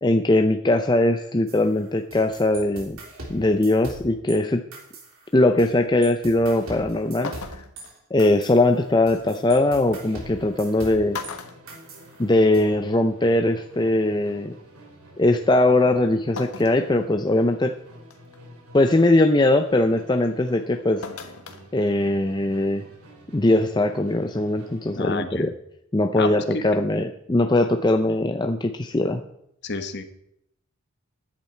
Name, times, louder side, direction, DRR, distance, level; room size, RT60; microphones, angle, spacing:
voice 1, 0.0-3.0 3.3-4.6 5.3-7.4 8.1-11.2 12.2-14.5 15.2-17.7 18.7-21.0 21.7-22.8 23.3-25.5 25.9-29.2, left 2 dB, 20° left, 6 dB, 0.5 m, -20 dB
sound 1, 1.5-4.4 4.7-5.7 6.0-11.3 11.7-12.6, right 1 dB, 70° right, 3.4 m, -41 dB
sound 2, 7.2-7.9 9.5-9.6 10.6-10.8 11.1-12.5 12.9-13.0 14.2-14.3 16.4-16.9 17.4-17.5 18.1-18.4 21.0-21.6 22.0-22.1, left 4 dB, 85° left, 1.4 m, -36 dB
Musical instrument, 8.5-25.2, equal, 90° right, 3.0 m, -48 dB
voice 2, 25.0-25.5 26.2-26.6 29.6-30.0, left 3 dB, 50° left, 9 dB, 1.2 m, -30 dB
14.0 x 10.5 x 4.5 m, 0.75 s
head